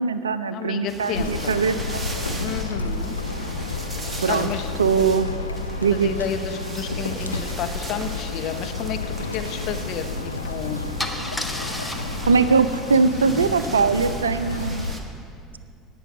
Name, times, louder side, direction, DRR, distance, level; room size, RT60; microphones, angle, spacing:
voice 1, 0.0-2.1 4.2-4.5 4.8-5.3 5.8-6.1 12.2-14.9, right 5 dB, 85° right, 13 dB, 0.3 m, -21 dB
voice 2, 0.5-1.6 2.4-3.1 4.3-4.8 6.0-9.0 9.3-10.9, left 8 dB, 50° left, 7 dB, 0.9 m, -31 dB
sound 1, 0.9-15.0, right 2 dB, 20° right, 1.3 m, -38 dB
sound 2, 1.1-14.9, left 3 dB, 85° left, 0.4 m, -31 dB
Car / Engine starting / Idling, 10.3-10.5 11.0-14.8, left 1 dB, 5° left, 1.0 m, -35 dB
17.5 x 6.2 x 5.1 m, 2.3 s
figure-of-eight pair, 65°, 0 cm